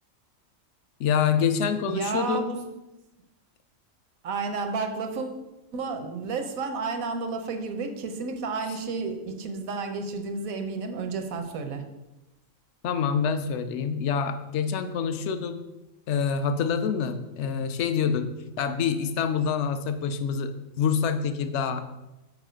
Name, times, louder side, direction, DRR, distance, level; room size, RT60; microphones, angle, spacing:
voice 1, 1.0-2.6 12.8-15.6 16.1-18.3 18.6-21.8, left 6 dB, 65° left, 10 dB, 0.9 m, -26 dB
voice 2, 1.9-2.6 4.2-5.4 5.7-11.9, right 4 dB, 90° right, 6 dB, 1.2 m, -31 dB
6.5 x 4.5 x 5.0 m, 1.0 s
omnidirectional pair, 1.4 m